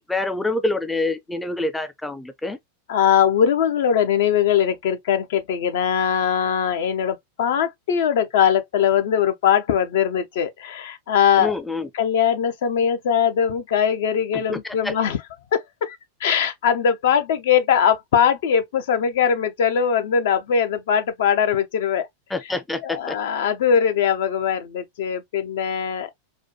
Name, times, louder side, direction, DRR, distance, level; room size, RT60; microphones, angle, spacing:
voice 1, 0.0-2.6 11.4-11.9 14.5-14.9 22.3-23.2, left 2 dB, 5° left, 0.5 m, -26 dB
voice 2, 2.9-11.5 11.9-15.2 15.5-22.1 22.8-26.1, left 8 dB, 55° left, 0.6 m, -21 dB
4.3 x 2.2 x 2.7 m
figure-of-eight pair, 90°, 0 cm